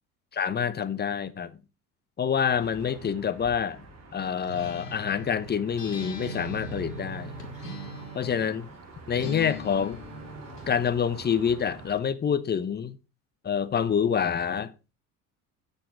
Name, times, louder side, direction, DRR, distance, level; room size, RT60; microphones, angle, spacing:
voice 1, 0.3-1.6 2.2-3.8 4.1-7.3 8.1-8.7 9.1-10.0 10.7-13.0 13.4-14.7, left 7 dB, 20° left, 0.8 m, -27 dB
sound 1, 2.5-12.0, right 2 dB, 35° right, 4.5 m, -46 dB
Acoustic guitar, 4.4-8.5 9.1-10.7, left 1 dB, 90° left, 1.8 m, -40 dB
9.2 x 7.0 x 4.6 m
figure-of-eight pair, 70°, 46 cm